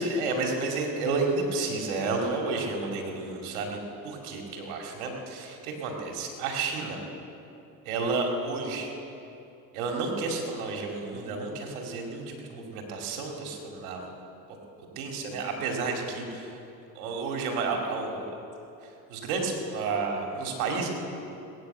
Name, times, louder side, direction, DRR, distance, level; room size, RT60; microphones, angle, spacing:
voice 1, 0.0-7.0 7.8-8.9 9.7-14.1 14.5-14.6 15.0-16.6 16.9-18.3 18.8-20.9, right 3 dB, 90° right, 1 dB, 2.5 m, -31 dB
19.5 x 9.5 x 7.8 m, 2.8 s
hypercardioid pair, 65°, 42 cm